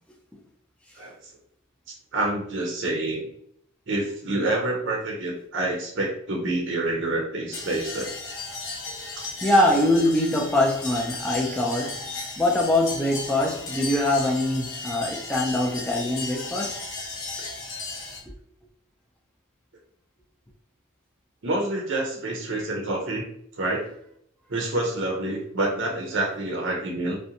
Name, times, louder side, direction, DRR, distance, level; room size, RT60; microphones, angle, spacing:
voice 1, 2.1-3.3 3.9-8.1 9.2-9.3 21.4-23.3 23.6-23.9 24.5-27.2, right 2 dB, 55° right, 0.5 m, -27 dB
sound 1, 7.5-18.2, left 3 dB, 70° left, 0.6 m, -35 dB
voice 2, 9.4-12.1 12.4-16.8, left 1 dB, 5° left, 0.4 m, -23 dB
2.5 x 2.1 x 2.8 m
head